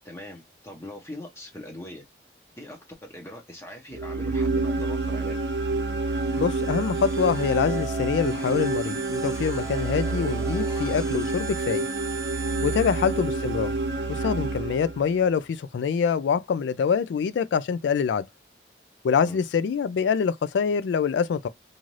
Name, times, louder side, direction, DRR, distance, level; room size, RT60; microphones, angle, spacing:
voice 1, 0.0-2.0 2.6-5.4 12.7-12.9 19.3-19.4, left 1 dB, 15° left, 0.7 m, -41 dB
sound 1, 3.9-15.2, right 3 dB, 75° right, 0.6 m, -28 dB
sound 2, 6.0-13.7, right 5 dB, 15° right, 0.5 m, -40 dB
voice 2, 6.4-11.9 12.6-13.7 14.1-18.3 19.0-21.5, left 6 dB, 85° left, 0.3 m, -25 dB
2.7 x 2.4 x 3.1 m
head